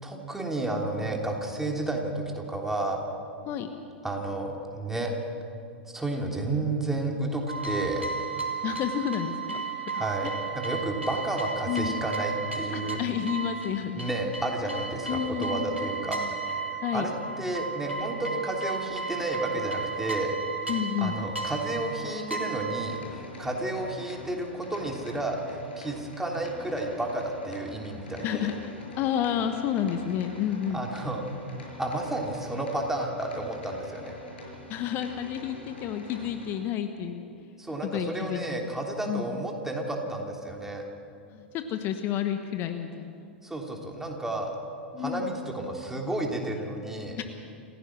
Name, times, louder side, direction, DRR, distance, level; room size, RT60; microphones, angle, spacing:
voice 1, 0.0-3.0 4.0-5.1 5.9-8.0 9.9-13.0 14.0-16.2 16.9-20.3 21.0-28.5 30.7-31.2 31.8-34.1 37.6-40.8 43.4-44.6 45.0-47.2, right 2 dB, 5° right, 0 dB, 3.2 m, -31 dB
sound 1, 7.5-23.0, right 4 dB, 90° right, 2.3 m, -34 dB
voice 2, 8.6-10.3 11.7-12.0 12.7-14.1 15.1-15.8 16.2-16.3 16.8-17.1 20.7-21.2 28.2-30.8 34.7-37.6 37.8-38.7 39.1-39.5 41.3-43.3 44.9-45.3 47.2-47.3, left 9 dB, 40° left, 7 dB, 1.2 m, -31 dB
sound 2, 22.8-36.5, left 2 dB, 70° left, 6.9 m, -45 dB
28.0 x 16.0 x 6.2 m, 2.5 s
figure-of-eight pair, 95°, 6 cm